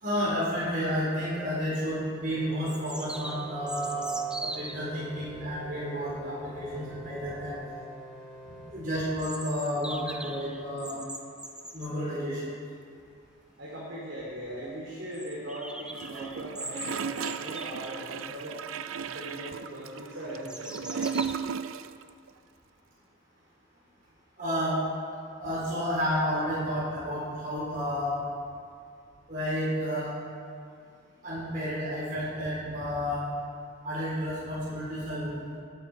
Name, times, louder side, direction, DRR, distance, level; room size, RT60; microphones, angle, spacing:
voice 1, 0.0-4.1 4.4-7.6 8.5-11.0 11.7-12.5 24.4-24.8 25.4-28.2 29.3-30.2 31.2-33.2 33.8-35.6, equal, 45° right, -8 dB, 4.0 m, -31 dB
sound 1, 2.4-8.7, equal, 25° left, 2.2 m, -47 dB
sound 2, 2.6-4.9 9.2-11.9 13.6-13.7 13.9-14.0 14.4-14.5 15.1-18.3 18.8-19.3 19.8-21.3, right 1 dB, 5° right, 0.6 m, -42 dB
voice 2, 13.6-18.6 19.0-21.1, right 1 dB, 70° right, -7 dB, 3.0 m, -39 dB
Gurgling / Toilet flush, 15.9-22.0 22.3-22.4, right 6 dB, 85° right, 0.4 m, -35 dB
18.5 x 9.1 x 4.5 m, 2.3 s
head